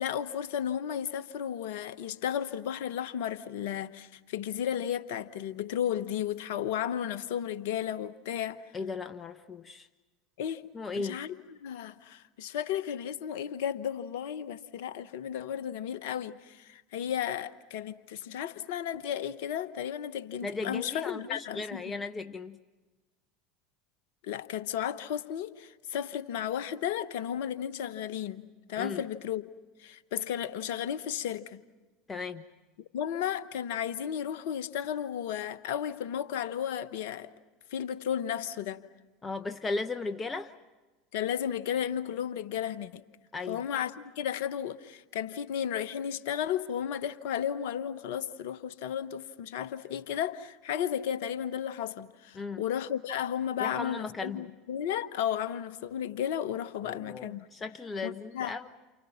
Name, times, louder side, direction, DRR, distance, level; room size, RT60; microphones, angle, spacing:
voice 1, 0.0-8.6 10.4-10.6 10.9-22.0 24.2-28.4 28.7-29.4 29.8-31.6 32.9-37.3 37.7-38.8 41.1-43.0 43.5-57.5 58.0-58.6, left 9 dB, 60° left, 1.1 m, -34 dB
voice 2, 8.7-9.9 10.7-11.2 20.4-22.6 28.8-29.0 32.1-32.4 39.2-40.5 43.3-43.6 52.3-52.6 53.6-54.5 56.8-58.7, left 3 dB, 20° left, 0.9 m, -36 dB
29.5 x 29.5 x 5.9 m
figure-of-eight pair, 75°, 0 cm